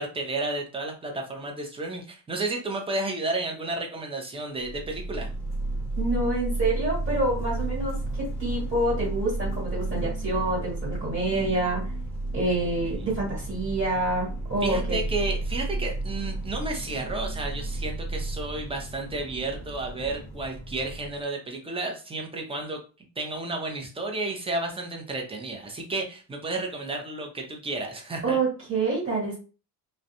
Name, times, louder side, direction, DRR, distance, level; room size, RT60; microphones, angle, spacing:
voice 1, 0.0-5.3 12.8-13.0 14.6-22.8 23.2-28.4, right 2 dB, 15° right, 2 dB, 0.6 m, -32 dB
sound 1, 4.6-21.2, right 2 dB, 5° left, 1.0 m, -32 dB
voice 2, 6.0-11.9 12.3-15.0 28.2-29.4, right 2 dB, 30° right, -4 dB, 1.4 m, -27 dB
2.3 x 2.1 x 2.8 m, 0.36 s
cardioid pair, 110°, 39 cm